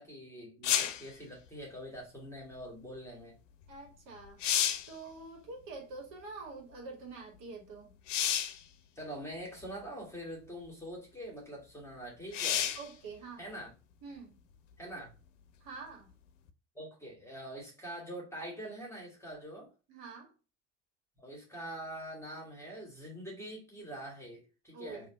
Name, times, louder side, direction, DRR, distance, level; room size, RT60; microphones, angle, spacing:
voice 1, 0.0-3.4 9.0-12.8 13.4-13.7 14.8-15.1 16.8-19.7 21.2-25.1, right 1 dB, 5° left, 1.8 m, -44 dB
sound 1, 0.6-1.1 3.7-3.8 4.2-4.9 8.1-8.6 9.6-9.7 12.3-12.9 16.5-16.6, left 10 dB, 75° left, 0.6 m, -30 dB
voice 2, 3.7-4.4 4.9-8.0 12.7-13.5 14.0-14.4 15.6-16.1 19.9-20.3 24.7-25.1, right 4 dB, 55° right, 1.8 m, -46 dB
3.8 x 2.9 x 3.6 m
figure-of-eight pair, 65°, 38 cm